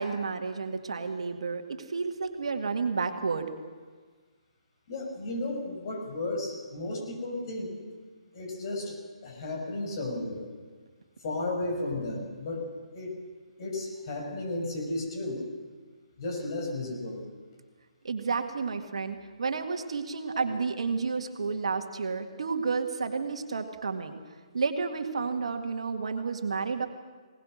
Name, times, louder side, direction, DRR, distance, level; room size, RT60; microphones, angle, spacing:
voice 1, 0.0-3.5 18.0-24.1 24.5-26.9, right 4 dB, 65° right, 5 dB, 1.9 m, -31 dB
voice 2, 4.9-7.8 8.3-9.0 9.2-10.4 11.2-12.6 12.9-13.1 13.6-15.4 16.2-17.2 20.3-20.4, left 2 dB, 45° left, 1 dB, 6.5 m, -33 dB
21.5 x 19.0 x 6.5 m, 1.5 s
figure-of-eight pair, 140°, 3 cm